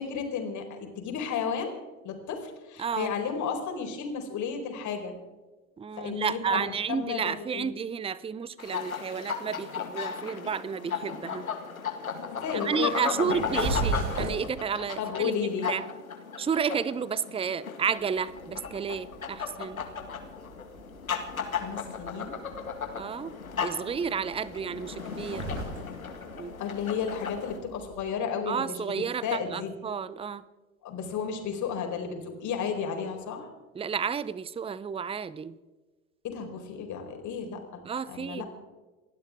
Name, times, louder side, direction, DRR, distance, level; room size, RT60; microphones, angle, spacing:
voice 1, 0.0-1.7 2.0-5.1 6.0-7.7 12.3-13.8 15.0-15.7 21.5-22.4 26.6-28.8 29.2-29.7 30.8-33.5 36.2-37.8 38.1-38.4, left 6 dB, 45° left, 3 dB, 4.3 m, -33 dB
voice 2, 2.8-3.1 5.8-11.4 12.5-15.3 15.6-15.8 16.4-19.8 23.0-25.5 26.4-26.5 28.5-30.4 33.7-35.6 37.8-38.4, right 6 dB, 15° right, 18 dB, 0.7 m, -31 dB
sound 1, 8.6-27.6, left 6 dB, 90° left, 2.0 m, -36 dB
sound 2, 13.2-14.6 18.0-28.1, right 2 dB, 45° right, 6.1 m, -38 dB
29.0 x 12.0 x 3.7 m, 1.2 s
figure-of-eight pair, 75°, 41 cm